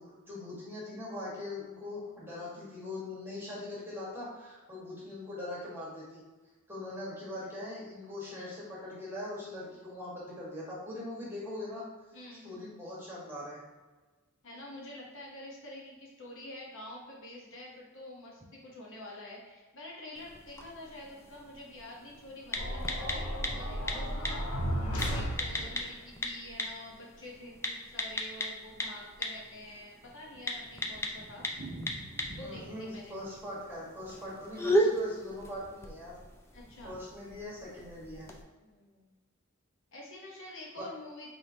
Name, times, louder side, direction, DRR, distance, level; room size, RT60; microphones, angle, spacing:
voice 1, 0.0-6.2 6.7-11.8 12.4-13.6 32.4-36.1 36.8-38.3 40.8-40.9, left 1 dB, 10° right, -7 dB, 1.5 m, -41 dB
voice 2, 12.1-12.6 14.4-24.5 25.0-31.5 32.3-33.2 36.5-37.0 38.6-39.2 39.9-41.3, left 1 dB, 65° left, -3 dB, 1.1 m, -47 dB
sound 1, 20.1-38.4, equal, 10° left, 0.4 m, -37 dB
sound 2, 22.6-25.9, equal, 90° left, 0.9 m, -34 dB
Thunder, 30.0-36.0 36.2-36.3 36.6-36.7 36.9-37.0 37.6-37.9, right 1 dB, 55° right, 1.1 m, -49 dB
4.6 x 3.5 x 2.8 m, 1.3 s
head